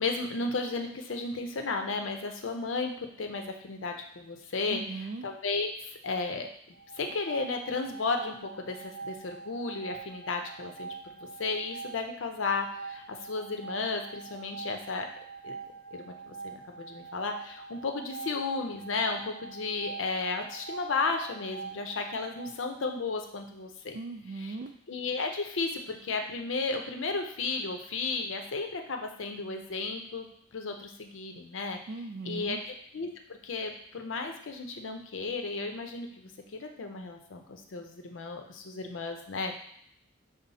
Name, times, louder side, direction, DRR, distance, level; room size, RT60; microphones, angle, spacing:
voice 1, 0.0-4.8 5.2-10.9 11.4-15.1 15.4-15.5 15.9-24.0 24.4-24.5 24.9-30.3 30.5-31.8 32.3-32.6 32.9-39.6, left 3 dB, 80° left, 4 dB, 0.6 m, -34 dB
voice 2, 4.7-5.3 23.9-24.7 31.9-32.6, right 3 dB, 50° right, 1 dB, 0.3 m, -38 dB
sound 1, 6.7-22.5, right 5 dB, 10° left, 0.9 m, -44 dB
5.4 x 2.0 x 4.0 m, 0.69 s
head